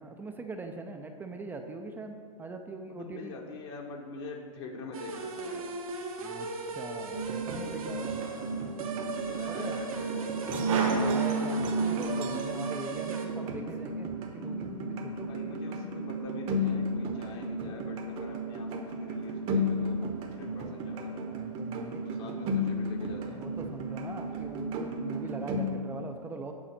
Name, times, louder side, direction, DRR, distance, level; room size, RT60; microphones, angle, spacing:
voice 1, 0.0-3.3 6.2-8.2 9.5-9.8 10.4-15.3 19.2-19.4 20.5-21.0 21.3-22.4 23.3-26.5, right 3 dB, 10° right, 5 dB, 0.4 m, -42 dB
voice 2, 2.9-5.7 8.1-10.8 15.2-21.3 22.0-23.4, left 3 dB, 50° left, 0 dB, 1.1 m, -45 dB
sound 1, 4.9-13.3, right 4 dB, 85° right, 1.4 m, -38 dB
sound 2, 7.1-25.7, right 1 dB, 30° right, 0.9 m, -33 dB
sound 3, 10.7-12.4, right 4 dB, 65° right, 1.4 m, -33 dB
8.8 x 4.0 x 7.1 m, 2.1 s
hypercardioid pair, 125°, 18 cm